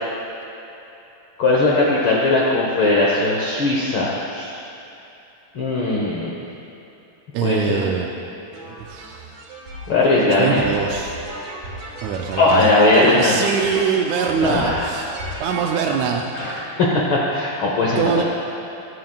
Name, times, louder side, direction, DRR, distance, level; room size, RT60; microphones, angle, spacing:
voice 1, 1.4-4.5 5.5-6.3 7.4-7.9 9.9-10.6 12.4-13.4 14.4-14.9 16.3-18.2, left 2 dB, 65° left, -4 dB, 1.3 m, -19 dB
voice 2, 7.3-8.1 8.7-9.3 10.4-11.1 12.0-12.7 12.9-16.6 18.0-18.2, right 7 dB, 80° right, 1 dB, 1.7 m, -23 dB
sound 1, 8.5-16.7, right 1 dB, 60° right, 3.6 m, -35 dB
23.0 x 9.3 x 2.4 m, 2.9 s
omnidirectional pair, 4.0 m